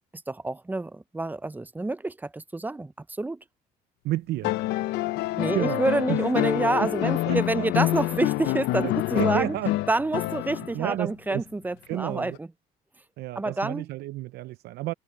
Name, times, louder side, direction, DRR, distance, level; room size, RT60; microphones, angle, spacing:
voice 1, 0.3-2.9 3.2-3.4 5.4-9.6 9.9-12.5 13.3-13.8, right 2 dB, 10° right, 0.6 m, -28 dB
voice 2, 4.0-4.5 5.5-6.2 6.8-7.7 8.8-9.8 10.7-11.4 11.9-12.4 13.2-14.9, right 16 dB, 75° right, 0.6 m, -31 dB
sound 1, 4.4-10.9 12.4-12.5, left 17 dB, 90° left, 0.7 m, -27 dB
cardioid pair, 110°, 17 cm